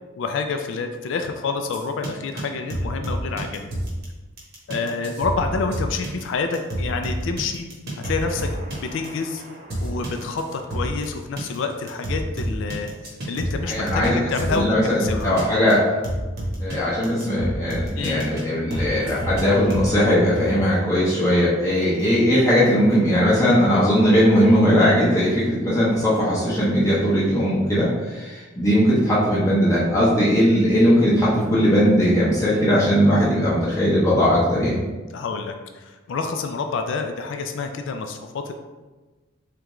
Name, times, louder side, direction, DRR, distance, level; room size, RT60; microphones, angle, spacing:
voice 1, 0.2-3.7 4.7-7.7 8.0-8.5 8.9-9.4 9.8-15.3 18.0-18.3 35.1-38.5, left 4 dB, 65° left, 6 dB, 0.3 m, -28 dB
sound 1, 1.7-2.1 2.4-2.5 2.7-4.0 4.4-11.1 11.4-11.6 11.9-14.1 14.4-14.6 15.0-15.4 15.7-15.8 16.0-16.7 17.0-18.4 18.7-19.9, right 1 dB, 50° right, 1.0 m, -29 dB
voice 2, 13.7-14.2 14.5-15.8 16.6-34.8, equal, 15° left, -9 dB, 0.7 m, -19 dB
3.6 x 3.3 x 3.0 m, 1.2 s
head